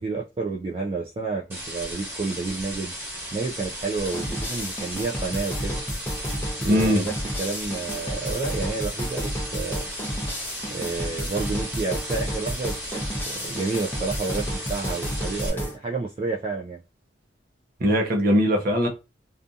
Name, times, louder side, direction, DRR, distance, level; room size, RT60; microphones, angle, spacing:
voice 1, 0.0-2.9 3.3-5.8 6.6-7.1 7.4-9.9 10.7-16.8, right 4 dB, 30° right, 0.3 m, -30 dB
sound 1, 1.5-15.5, equal, 15° right, 1.2 m, -36 dB
sound 2, 4.0-15.8, equal, 10° left, 0.6 m, -31 dB
voice 2, 6.6-7.1 17.8-18.9, equal, 50° right, 0.7 m, -20 dB
2.6 x 2.4 x 2.4 m
head